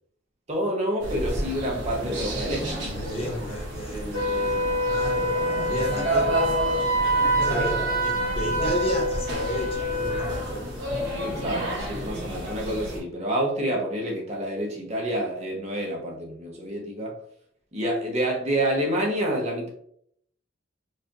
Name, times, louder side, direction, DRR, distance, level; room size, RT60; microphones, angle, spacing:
voice 1, 0.5-2.8 3.1-3.3 7.5-7.7 11.0-17.2 17.7-19.7, right 1 dB, 35° right, 0 dB, 0.8 m, -28 dB
sound 1, 1.0-13.0, equal, 60° right, 1.5 m, -31 dB
voice 2, 2.9-6.3 7.4-10.9, equal, 30° left, 0 dB, 0.6 m, -33 dB
Wind instrument woodwind instrument, 4.1-10.5, right 1 dB, 85° right, 1.3 m, -26 dB
4.6 x 2.5 x 2.9 m, 0.66 s
head